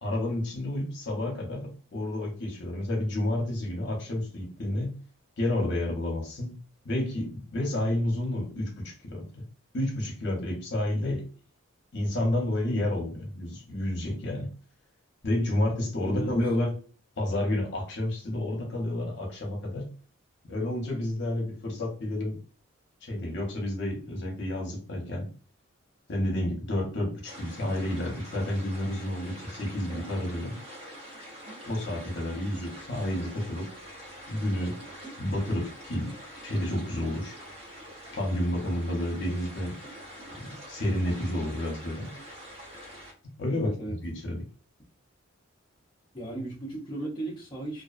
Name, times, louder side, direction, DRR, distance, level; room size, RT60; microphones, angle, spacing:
voice 1, 0.0-5.0 5.4-6.6 6.8-9.4 9.7-11.3 11.9-14.5 15.2-16.8 17.2-19.9 20.4-22.4 23.0-25.3 26.1-30.5 31.7-33.7 34.3-34.8 35.2-36.2 36.4-37.3 38.1-39.8 40.4-42.1 43.2-44.5, left 1 dB, 55° left, 0.8 m, -30 dB
voice 2, 16.0-16.4 43.5-44.0 46.1-47.8, right 2 dB, 25° left, 0.6 m, -36 dB
sound 1, 27.2-43.1, equal, 30° right, 0.7 m, -45 dB
2.4 x 2.2 x 2.4 m
head